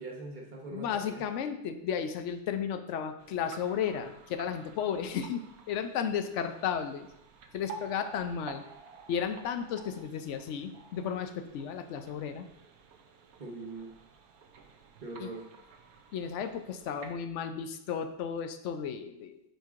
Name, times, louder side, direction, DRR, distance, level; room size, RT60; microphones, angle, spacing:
voice 1, 0.0-1.2 13.4-13.9 15.0-15.5, right 2 dB, 35° right, 0 dB, 1.1 m, -42 dB
voice 2, 0.7-7.1 7.5-8.6 9.1-12.5 15.2-15.3 16.1-19.4, left 7 dB, 70° left, 8 dB, 0.7 m, -34 dB
sound 1, 3.2-17.1, right 5 dB, 70° right, 1.1 m, -51 dB
9.3 x 4.5 x 2.5 m, 0.79 s
omnidirectional pair, 1.7 m